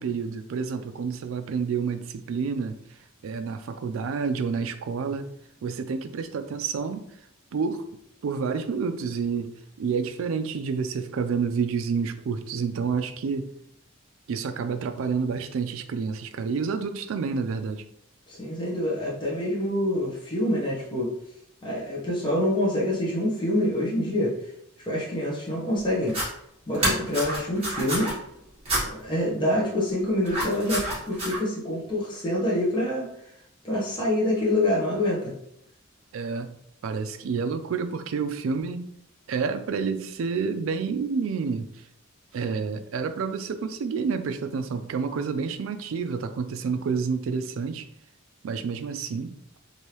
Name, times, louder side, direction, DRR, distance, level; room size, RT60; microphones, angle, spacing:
voice 1, 0.0-2.8 3.2-5.3 5.6-7.0 7.5-7.9 8.2-13.5 14.3-17.8 36.1-36.5 36.8-38.8 39.3-41.7 42.3-47.9 48.4-49.3, right 5 dB, 70° right, 10 dB, 0.3 m, -29 dB
voice 2, 18.3-21.1 21.6-24.3 24.8-26.2 26.7-28.1 28.9-33.1 33.6-35.3, left 1 dB, 20° left, -6 dB, 0.8 m, -26 dB
sound 1, 26.0-26.3 26.7-28.1 28.7-28.8 30.2-31.4, right 1 dB, 25° right, 1.4 m, -28 dB
3.2 x 2.6 x 2.9 m, 0.76 s
head